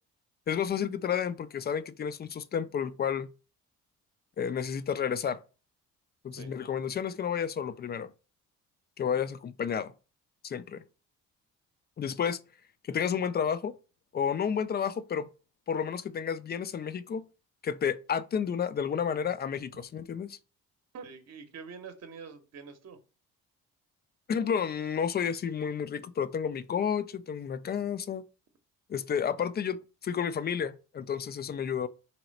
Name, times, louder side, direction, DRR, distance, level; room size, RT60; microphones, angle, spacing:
voice 1, 0.5-3.3 4.4-5.4 6.2-8.1 9.0-9.9 10.4-10.8 12.0-12.4 12.9-13.7 14.1-15.3 15.7-17.2 17.6-20.4 24.3-28.2 28.9-31.9, left 7 dB, 30° left, 0.4 m, -31 dB
voice 2, 20.9-23.0, right 5 dB, 45° right, 0.8 m, -45 dB
3.0 x 3.0 x 4.0 m
hypercardioid pair, 50°, 37 cm